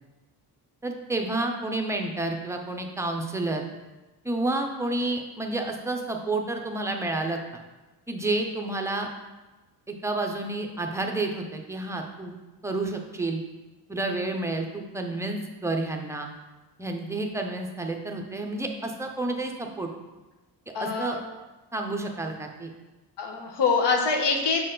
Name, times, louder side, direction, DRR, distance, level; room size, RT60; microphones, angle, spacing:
voice 1, 0.8-3.7 4.2-7.6 8.1-9.1 9.9-12.3 12.6-13.4 13.9-16.3 16.8-19.9 20.8-21.2 21.7-22.7, right 2 dB, 5° right, 3 dB, 0.4 m, -30 dB
voice 2, 20.7-21.2 23.2-24.6, left 4 dB, 85° left, 2 dB, 1.0 m, -24 dB
6.5 x 4.4 x 3.8 m, 1.1 s
wide cardioid pair, 160°, 41 cm